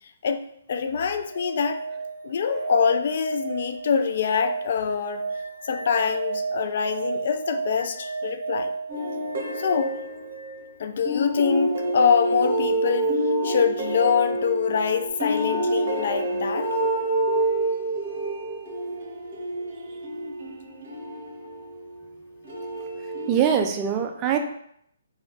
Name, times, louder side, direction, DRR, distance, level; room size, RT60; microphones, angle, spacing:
voice 1, 0.7-1.8 2.2-5.2 5.7-8.7 9.6-10.0 10.8-13.1 13.4-16.7, left 6 dB, 50° left, 8 dB, 0.3 m, -24 dB
sound 1, 0.9-10.7 13.0-13.1, right 4 dB, 85° right, 0.6 m, -33 dB
sound 2, 8.9-10.6 11.1-21.9 22.5-23.5, right 1 dB, 50° right, 0.9 m, -28 dB
voice 2, 23.3-24.4, right 8 dB, 25° right, 4 dB, 0.4 m, -22 dB
3.2 x 2.3 x 3.9 m, 0.70 s
figure-of-eight pair, 130°, 0 cm